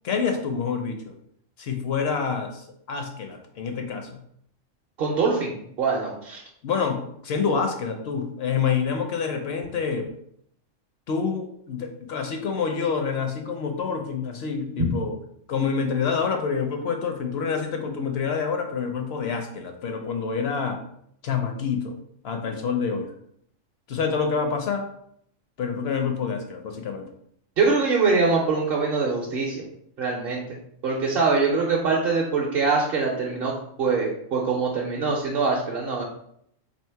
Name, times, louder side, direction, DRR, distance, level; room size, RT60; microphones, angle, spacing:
voice 1, 0.0-1.1 1.6-4.2 6.6-10.1 11.1-15.1 15.5-20.8 21.2-21.9 22.2-23.1 23.9-24.8 25.6-27.1, left 6 dB, 65° left, 4 dB, 0.7 m, -27 dB
voice 2, 5.0-6.4 27.6-29.6 30.0-30.4 30.8-33.5 33.8-36.0, right 4 dB, 55° right, -2 dB, 0.7 m, -23 dB
2.9 x 2.7 x 4.4 m, 0.70 s
omnidirectional pair, 1.4 m